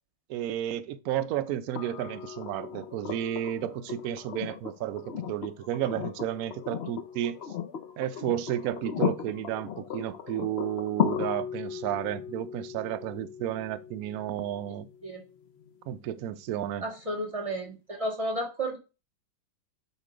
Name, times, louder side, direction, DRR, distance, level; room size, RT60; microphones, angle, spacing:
voice 1, 0.3-7.4 8.0-14.9 15.9-16.9, right 11 dB, 85° right, 0.7 m, -32 dB
sound 1, 1.8-15.7 17.4-17.5, left 8 dB, 75° left, 0.6 m, -36 dB
voice 2, 16.8-18.8, right 1 dB, 20° right, 1.6 m, -32 dB
8.2 x 3.1 x 5.0 m
omnidirectional pair, 2.2 m